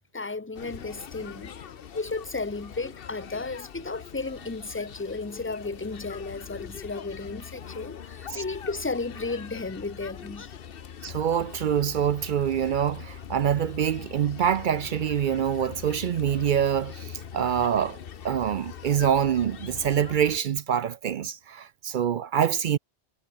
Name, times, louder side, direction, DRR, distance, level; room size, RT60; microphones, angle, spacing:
voice 1, 0.0-1.6 1.9-10.5, left 3 dB, 15° left, 0.7 m, -34 dB
sound 1, 0.5-20.4, left 8 dB, 60° left, 1.0 m, -42 dB
voice 2, 11.0-18.0 18.2-22.8, right 9 dB, 60° right, 0.6 m, -25 dB
omnidirectional pair, 1.1 m